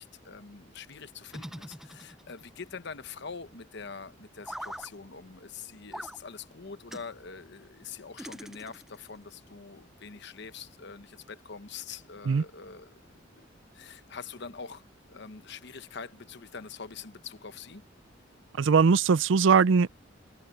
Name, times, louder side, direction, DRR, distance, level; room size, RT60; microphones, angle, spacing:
voice 1, 0.0-13.4 13.7-14.8 15.1-17.8, left 5 dB, 60° left, 1.0 m, -44 dB
sound 1, 1.3-2.5 4.4-4.9 5.9-6.2 6.9-7.1 8.2-9.0, equal, ahead, 0.4 m, -42 dB
voice 2, 18.6-19.9, right 5 dB, 70° right, 0.5 m, -20 dB
head